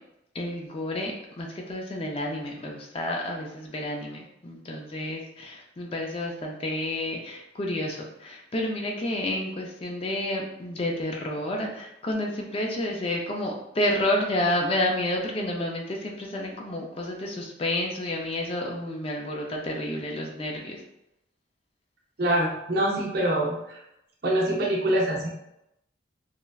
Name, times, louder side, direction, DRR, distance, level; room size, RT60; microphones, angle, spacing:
voice 1, 0.3-20.8, left 1 dB, 30° left, 0 dB, 0.3 m, -30 dB
voice 2, 22.2-23.8 24.2-25.3, right 1 dB, 50° right, -4 dB, 0.6 m, -25 dB
3.1 x 2.4 x 2.3 m, 0.84 s
head